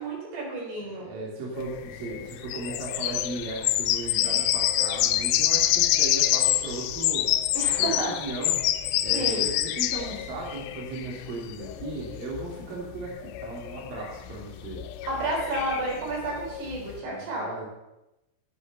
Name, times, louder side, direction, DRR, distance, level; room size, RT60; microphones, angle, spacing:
voice 1, 0.0-1.1 7.6-8.1 9.1-9.5 15.0-17.5, right 2 dB, 75° right, -2 dB, 6.0 m, -31 dB
voice 2, 0.9-7.3 7.8-8.6 9.0-14.8 17.0-17.7, right 2 dB, 60° right, -4 dB, 4.5 m, -36 dB
sound 1, 1.6-17.0, left 13 dB, 90° left, 2.9 m, -27 dB
12.5 x 10.5 x 6.9 m, 0.96 s
omnidirectional pair, 4.8 m